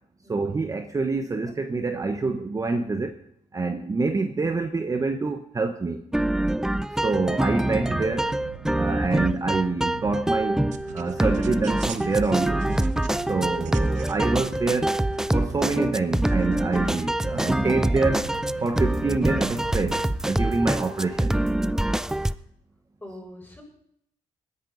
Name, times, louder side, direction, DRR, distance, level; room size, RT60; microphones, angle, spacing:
voice 1, 0.3-3.2 3.5-6.0 7.0-8.3 8.8-10.6 10.9-12.6 13.3-15.0 15.3-18.3 18.6-21.4, right 3 dB, 25° right, 6 dB, 1.1 m, -26 dB
sound 1, 6.1-22.3, right 1 dB, 5° right, 0.5 m, -25 dB
sound 2, 7.6-20.3, right 10 dB, 75° right, 0.8 m, -41 dB
voice 2, 23.0-23.6, left 1 dB, 15° left, -1 dB, 7.2 m, -44 dB
20.0 x 11.0 x 4.0 m, 0.72 s
cardioid pair, 85°, 13 cm